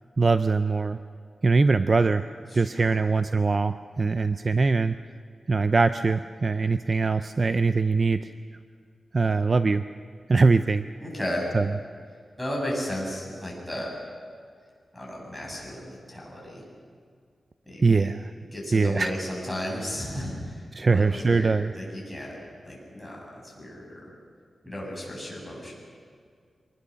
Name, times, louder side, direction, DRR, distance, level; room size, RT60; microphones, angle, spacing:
voice 1, 0.2-1.0 1.4-2.3 2.5-5.0 5.5-8.3 9.1-9.8 10.3-10.8 11.5-11.7 17.8-18.3 18.7-19.1 20.7-21.7, right 4 dB, 40° right, 11 dB, 0.5 m, -22 dB
voice 2, 2.5-3.0 11.0-11.5 12.4-13.9 14.9-16.6 17.7-18.1 18.5-22.4 22.6-24.0 24.6-25.7, equal, ahead, -2 dB, 7.5 m, -34 dB
24.5 x 20.0 x 6.4 m, 2.1 s
wide cardioid pair, 115°, 0 cm